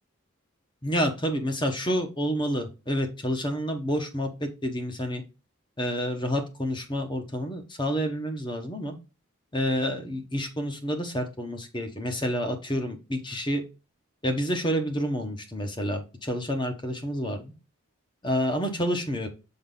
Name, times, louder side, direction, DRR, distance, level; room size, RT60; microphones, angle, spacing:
voice 1, 0.8-5.2 5.8-8.9 9.5-13.6 14.2-17.5 18.2-19.3, equal, 20° left, 5 dB, 1.1 m, -29 dB
7.7 x 3.9 x 3.8 m, 0.31 s
head